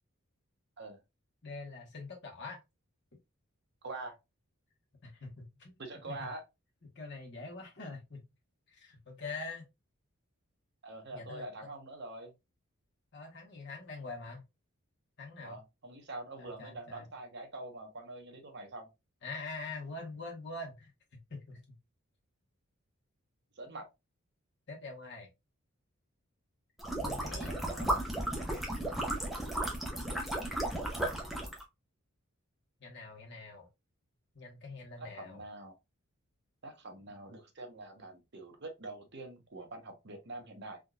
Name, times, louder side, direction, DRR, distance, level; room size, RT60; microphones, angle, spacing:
voice 1, 1.4-2.6 5.0-5.7 6.1-6.3 6.9-8.2 8.7-9.6 11.1-11.7 13.1-14.4 15.2-15.6 16.4-17.1 19.2-21.8 24.7-25.3 27.0-27.6 32.8-33.7 34.3-35.4, left 3 dB, 50° left, 1.2 m, -44 dB
voice 2, 3.8-4.2 5.8-6.4 10.8-12.3 15.4-18.9 23.6-23.9 27.0-28.1 35.0-35.7 36.6-40.8, right 2 dB, 50° right, 0.9 m, -45 dB
sound 1, 26.8-31.6, right 1 dB, ahead, 0.6 m, -34 dB
3.6 x 2.7 x 2.3 m
head